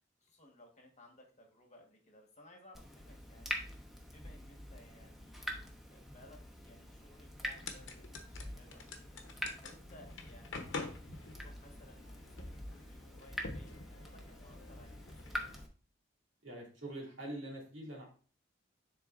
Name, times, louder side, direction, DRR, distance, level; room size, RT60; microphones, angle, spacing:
voice 1, 0.2-3.6 4.1-9.2 9.6-15.4, left 1 dB, 35° left, 2 dB, 1.4 m, -61 dB
Water tap faucet / Drip, 2.7-15.7, equal, ahead, 0.8 m, -46 dB
sound 1, 7.5-15.6, left 3 dB, 70° left, 0.9 m, -48 dB
voice 2, 16.4-18.1, right 1 dB, 75° right, -1 dB, 2.4 m, -44 dB
9.9 x 3.9 x 2.5 m, 0.39 s
head